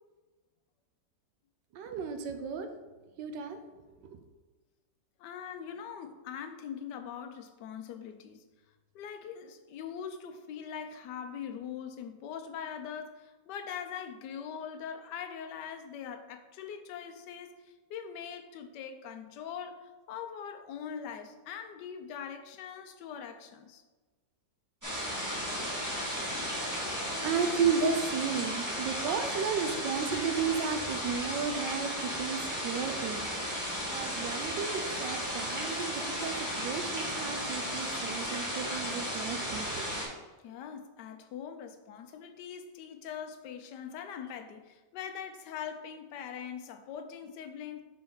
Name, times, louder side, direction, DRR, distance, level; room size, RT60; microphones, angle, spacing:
voice 1, 1.7-2.7 3.2-3.6 26.9-33.2 33.9-39.9, right 6 dB, 85° right, 7 dB, 1.3 m, -33 dB
voice 2, 5.2-8.4 8.9-17.5 17.9-23.8 40.4-47.8, left 8 dB, 80° left, 7 dB, 1.2 m, -42 dB
sound 1, 24.8-40.1, equal, 10° right, 1.6 m, -35 dB
4.4 x 4.3 x 5.4 m, 1.3 s
omnidirectional pair, 1.9 m